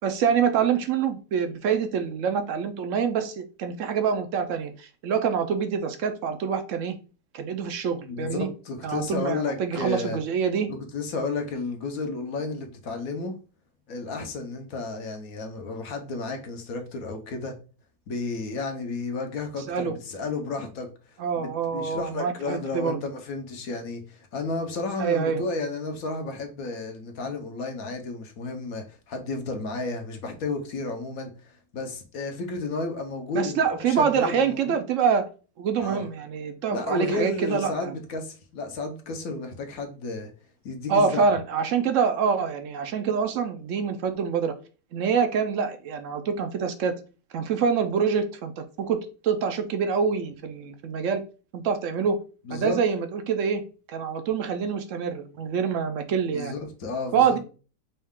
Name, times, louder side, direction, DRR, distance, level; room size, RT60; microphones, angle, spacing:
voice 1, 0.0-6.9 7.3-8.5 8.8-10.7 19.7-20.0 21.2-23.0 25.0-25.4 33.3-35.3 35.6-37.9 40.9-44.5 44.9-46.9 47.3-51.2 51.5-52.2 52.5-53.6 53.9-56.5 57.1-57.4, right 6 dB, 65° right, 0.9 m, -26 dB
voice 2, 8.1-10.2 10.7-13.4 13.9-17.5 18.1-20.9 21.4-34.8 35.8-36.1 36.7-40.3 40.6-41.2 52.5-52.8 56.3-57.4, left 3 dB, 70° left, 1.3 m, -32 dB
5.3 x 2.4 x 3.6 m
omnidirectional pair, 1.6 m